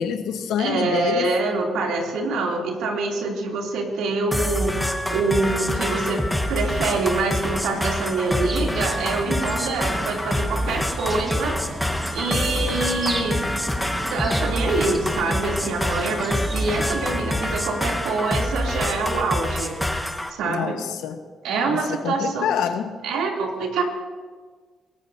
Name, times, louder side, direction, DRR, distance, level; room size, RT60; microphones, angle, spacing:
voice 1, 0.0-1.3 20.4-21.2 21.7-22.9, left 8 dB, 85° left, 7 dB, 1.2 m, -26 dB
voice 2, 0.6-11.6 12.1-13.4 14.1-19.7 20.3-20.8 21.4-22.5 23.0-23.8, right 3 dB, 90° right, 0 dB, 3.0 m, -25 dB
sound 1, 4.3-20.3, left 1 dB, 5° left, 1.2 m, -26 dB
sound 2, 8.3-17.7, right 1 dB, 20° right, 1.7 m, -34 dB
22.0 x 18.5 x 2.8 m, 1.5 s
cardioid pair, 90°, 0 cm